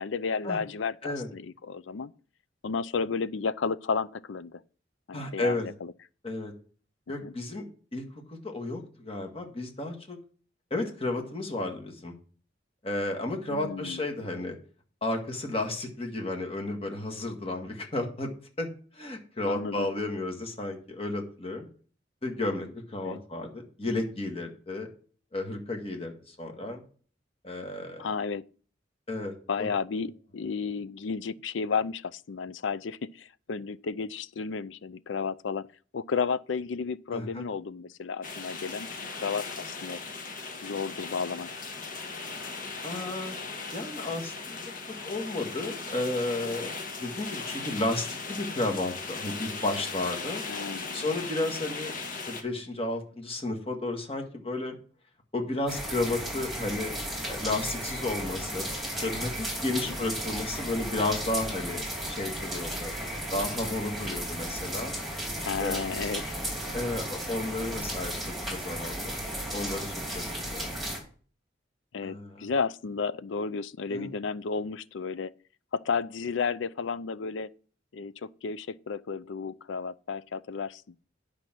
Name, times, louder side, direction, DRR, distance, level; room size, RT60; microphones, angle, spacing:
voice 1, 0.0-2.1 2.6-4.6 5.1-5.9 7.2-7.3 13.5-14.0 19.4-19.9 23.0-23.2 28.0-28.4 29.5-35.7 35.9-40.0 40.6-41.5 50.5-51.1 59.8-60.0 65.4-66.4 71.9-75.3 75.7-77.5 77.9-80.8, left 5 dB, 85° left, 0.5 m, -32 dB
voice 2, 5.1-5.7 6.2-6.5 7.1-7.7 7.9-10.2 10.7-12.1 12.8-14.6 15.0-18.3 18.6-18.7 18.9-21.7 22.2-24.9 25.3-26.8 27.4-28.1 29.1-29.7 37.1-37.5 42.8-43.4 43.7-44.6 44.9-46.7 47.0-50.4 50.9-54.8 55.3-56.9 57.3-58.7 58.9-62.9 63.3-65.0 65.6-65.8 66.7-69.2 69.5-70.8 72.0-72.5 73.9-74.1, left 2 dB, 30° left, 1.8 m, -33 dB
sound 1, 38.2-52.4, left 4 dB, 50° left, 1.4 m, -38 dB
sound 2, 55.7-71.0, right 1 dB, ahead, 3.0 m, -34 dB
9.9 x 5.2 x 6.1 m
head